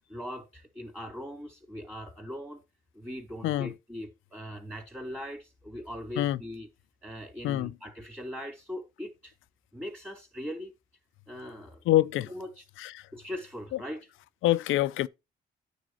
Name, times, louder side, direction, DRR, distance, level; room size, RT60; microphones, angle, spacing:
voice 1, 0.0-2.6 2.9-6.7 7.0-9.3 9.7-10.7 11.3-11.8 12.3-12.6 13.1-14.1, equal, 10° right, 3.5 m, -40 dB
voice 2, 11.9-12.3 12.8-13.1 14.4-15.1, left 14 dB, 85° left, 0.6 m, -25 dB
9.1 x 3.6 x 6.3 m
cardioid pair, 90°, 20 cm